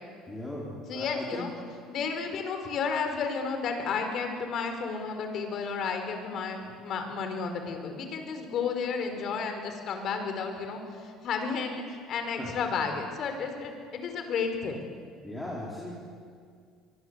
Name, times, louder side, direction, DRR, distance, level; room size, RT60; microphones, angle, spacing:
voice 1, 0.3-1.4 12.4-12.5 15.2-15.9, left 1 dB, 10° left, -5 dB, 4.5 m, -37 dB
voice 2, 0.9-1.5 1.9-14.9, left 5 dB, 50° left, 6 dB, 4.6 m, -32 dB
24.0 x 23.5 x 8.2 m, 2.2 s
cardioid pair, 135°, 0 cm